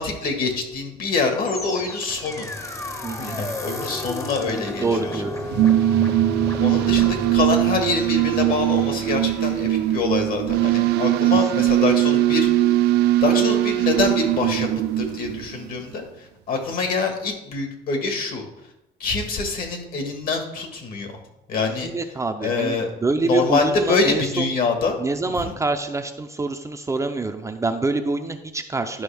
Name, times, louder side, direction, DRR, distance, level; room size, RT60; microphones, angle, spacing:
voice 1, 0.0-2.5 3.2-5.2 6.6-12.5 13.2-14.7 15.0-18.4 19.0-21.1 21.5-21.9 22.4-22.9 23.2-25.0 25.2-25.5, left 4 dB, 60° left, 4 dB, 1.8 m, -25 dB
sound 1, 1.4-10.6, left 1 dB, 15° left, 0.9 m, -33 dB
voice 2, 3.0-3.4 4.8-5.3 11.5-11.7 21.8-24.5 25.0-29.0, right 3 dB, 20° right, 6 dB, 0.6 m, -26 dB
sound 2, 5.4-15.8, right 14 dB, 80° right, 0.4 m, -20 dB
11.0 x 5.2 x 3.5 m, 0.89 s
cardioid pair, 110°, 17 cm